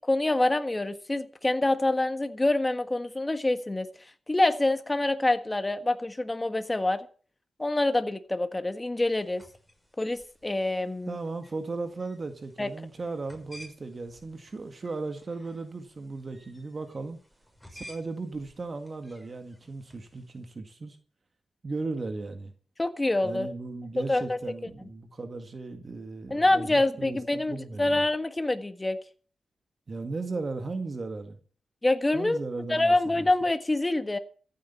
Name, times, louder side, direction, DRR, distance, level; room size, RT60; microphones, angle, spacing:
voice 1, 0.1-3.9 4.3-7.1 7.6-9.4 10.0-11.2 12.6-12.7 22.8-23.5 24.1-24.4 26.3-29.0 31.8-32.4 32.7-34.2, left 2 dB, 20° left, 1.5 m, -26 dB
sound 1, 9.1-20.5, equal, 5° left, 6.7 m, -55 dB
voice 2, 11.1-17.2 17.7-21.0 21.6-22.5 23.2-28.0 29.9-31.4 32.1-33.3, right 3 dB, 45° right, 2.0 m, -36 dB
14.5 x 8.7 x 7.1 m
cardioid pair, 75°, 0 cm